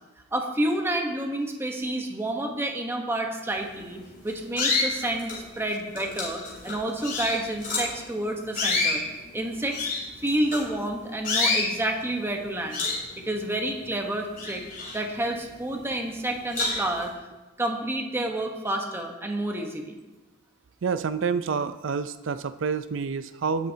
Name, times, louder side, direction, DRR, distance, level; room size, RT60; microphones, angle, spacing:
voice 1, 0.3-9.0 9.3-9.9 10.2-12.8 13.2-14.6 14.9-17.1 17.6-20.0, right 1 dB, 15° right, 2 dB, 1.1 m, -29 dB
sound 1, 3.7-4.0 4.5-5.4 6.0-8.0 8.5-10.9 11.2-11.7 12.2-12.4 12.7-13.9 14.2-15.5 15.9-16.0 16.5-17.0, left 3 dB, 45° left, 3.8 m, -28 dB
voice 2, 20.8-23.7, right 5 dB, 80° right, 12 dB, 0.5 m, -28 dB
18.0 x 7.3 x 2.8 m, 1.1 s
head